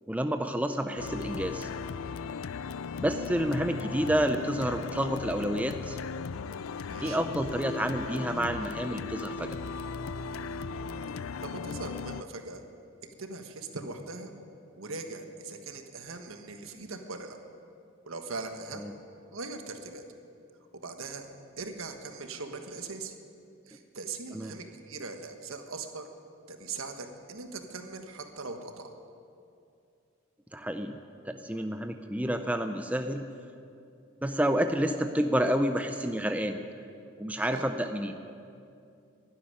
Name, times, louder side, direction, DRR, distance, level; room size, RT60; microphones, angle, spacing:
voice 1, 0.1-1.7 3.0-6.0 7.0-9.5 18.8-18.9 24.3-24.5 30.5-31.0 31.2-33.2 34.2-36.6 37.2-38.2, equal, 5° right, 7 dB, 0.5 m, -29 dB
sound 1, 1.0-12.2, left 5 dB, 80° left, 0.4 m, -37 dB
voice 2, 6.8-7.2 11.4-12.6 13.2-14.3 14.8-17.4 18.0-18.9 19.3-20.0 20.8-21.3 21.6-23.1 23.7-26.1 26.5-28.9 37.5-37.7, right 3 dB, 75° right, 5 dB, 1.3 m, -40 dB
12.0 x 11.0 x 10.0 m, 2.5 s
head